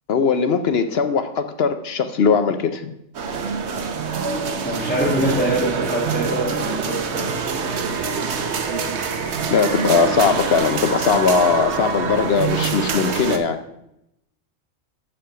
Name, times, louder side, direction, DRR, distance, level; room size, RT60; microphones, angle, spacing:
voice 1, 0.1-2.9 9.5-13.6, left 5 dB, 60° left, 9 dB, 0.8 m, -19 dB
sound 1, 3.1-13.4, right 5 dB, 60° right, 1.1 m, -25 dB
voice 2, 4.6-7.2, right 1 dB, 5° left, -4 dB, 1.5 m, -24 dB
7.6 x 6.4 x 5.6 m, 0.80 s
omnidirectional pair, 1.4 m